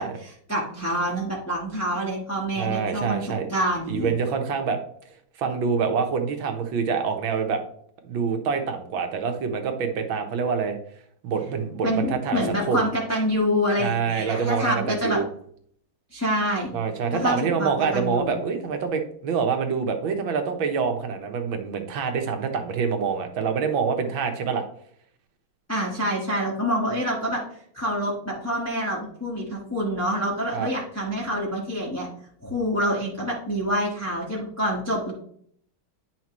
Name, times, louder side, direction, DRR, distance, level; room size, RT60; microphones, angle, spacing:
voice 1, 0.0-4.1 11.8-15.2 16.1-16.7 17.1-18.3 25.7-27.4 27.7-32.1 32.4-35.1, equal, 10° left, -4 dB, 1.4 m, -27 dB
voice 2, 2.6-3.5 3.9-4.8 5.4-7.6 8.1-10.8 11.2-12.9 13.8-15.3 16.7-24.6 30.5-30.7, right 5 dB, 75° right, 5 dB, 1.8 m, -26 dB
9.9 x 5.9 x 3.1 m, 0.63 s
omnidirectional pair, 2.3 m